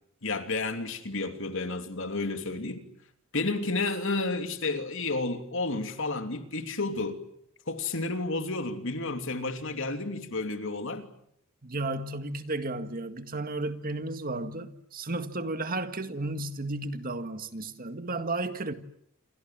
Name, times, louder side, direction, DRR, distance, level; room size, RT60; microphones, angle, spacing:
voice 1, 0.2-2.8 3.3-7.2 7.7-11.1, left 3 dB, 65° left, 3.0 m, -31 dB
voice 2, 11.6-18.7, right 2 dB, 45° right, 1.9 m, -33 dB
28.5 x 24.5 x 7.6 m
head